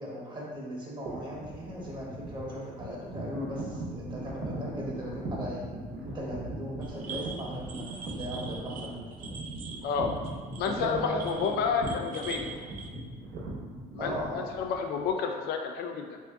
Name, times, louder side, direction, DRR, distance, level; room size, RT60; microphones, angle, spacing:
voice 1, 0.0-5.7 6.0-9.1 10.6-12.5 14.0-14.5, equal, 25° right, -4 dB, 1.0 m, -38 dB
sound 1, 1.0-15.1, right 2 dB, 75° right, 0.9 m, -39 dB
sound 2, 6.8-12.9, right 5 dB, 55° right, 0.4 m, -43 dB
voice 2, 10.6-12.5 13.9-16.2, left 6 dB, 75° left, 4 dB, 0.4 m, -30 dB
3.3 x 2.6 x 3.5 m, 1.6 s
cardioid pair, 110°, 17 cm